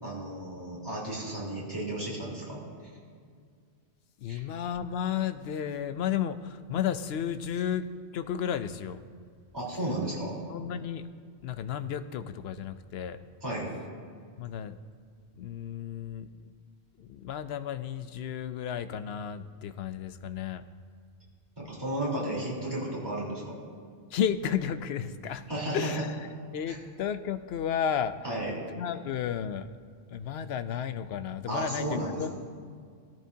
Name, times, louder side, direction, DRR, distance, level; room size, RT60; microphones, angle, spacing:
voice 1, 0.0-2.6 4.3-4.4 9.5-10.4 13.4-13.7 21.6-23.6 25.5-25.9 26.7-26.8 28.2-28.6 31.5-32.3, right 1 dB, 20° right, -6 dB, 3.8 m, -33 dB
voice 2, 4.2-7.8 8.1-9.0 10.5-11.1 11.4-13.2 14.4-14.8 15.4-16.3 17.0-20.6 24.1-25.4 25.7-26.2 26.5-28.1 28.8-29.7 30.1-32.3, left 9 dB, 70° left, 11 dB, 0.8 m, -33 dB
18.0 x 14.0 x 2.8 m, 2.1 s
omnidirectional pair, 1.1 m